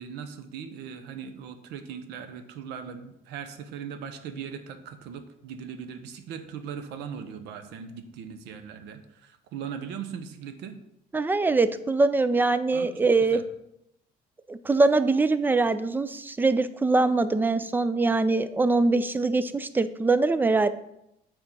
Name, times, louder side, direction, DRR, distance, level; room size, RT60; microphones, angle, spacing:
voice 1, 0.0-10.8 12.7-12.9 13.3-13.4, right 7 dB, 90° right, 8 dB, 0.8 m, -39 dB
voice 2, 11.1-13.4 14.5-20.7, right 3 dB, 10° right, 13 dB, 0.4 m, -23 dB
7.2 x 3.7 x 5.4 m, 0.81 s
cardioid pair, 110°, 17 cm